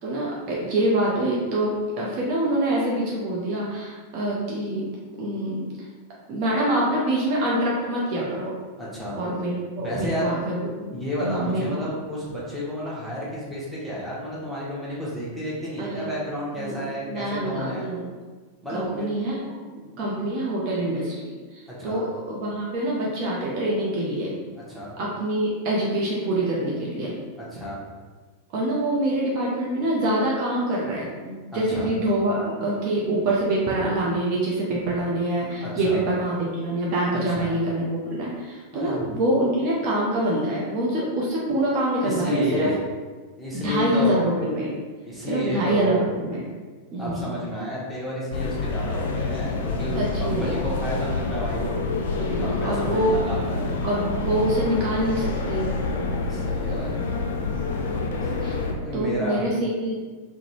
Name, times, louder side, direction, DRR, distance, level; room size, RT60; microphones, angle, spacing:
voice 1, 0.0-4.9 5.2-5.7 6.3-8.5 9.1-11.9 15.8-16.1 16.6-18.1 18.7-19.4 19.7-24.4 25.0-27.1 28.5-42.7 43.5-44.7 45.3-46.5 46.9-47.3 50.0-50.6 52.2-53.1 53.8-55.7 58.4-58.6 58.9-60.0, right 1 dB, 40° right, -5 dB, 0.6 m, -25 dB
voice 2, 8.8-9.1 9.8-10.3 10.9-17.9 18.6-19.1 21.7-22.0 24.7-24.9 27.4-27.8 31.5-31.9 35.6-36.0 37.1-37.5 38.7-39.1 42.0-42.8 43.4-44.2 45.0-46.0 47.0-51.8 52.1-53.8 56.3-57.0 58.2-58.3 58.7-59.5, equal, ahead, -7 dB, 1.0 m, -31 dB
sound 1, 48.3-58.7, left 3 dB, 60° left, 0.4 m, -27 dB
3.7 x 2.1 x 3.0 m, 1.4 s
figure-of-eight pair, 90°, 0 cm